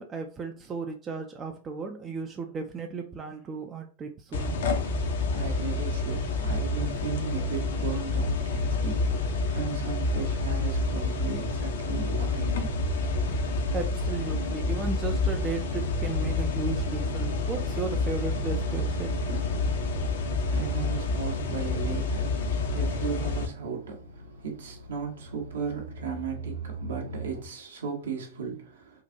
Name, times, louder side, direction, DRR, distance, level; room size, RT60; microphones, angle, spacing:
voice 1, 0.0-4.6 13.7-19.4, right 4 dB, 25° right, 0.4 m, -35 dB
sound 1, 4.3-23.5, left 3 dB, 60° left, 0.6 m, -28 dB
voice 2, 5.3-12.7 20.5-22.3 22.7-29.0, right 6 dB, 65° right, 1.1 m, -36 dB
sound 2, 10.8-27.4, right 2 dB, 90° right, 0.6 m, -40 dB
3.8 x 2.4 x 2.7 m
figure-of-eight pair, 90°, 0 cm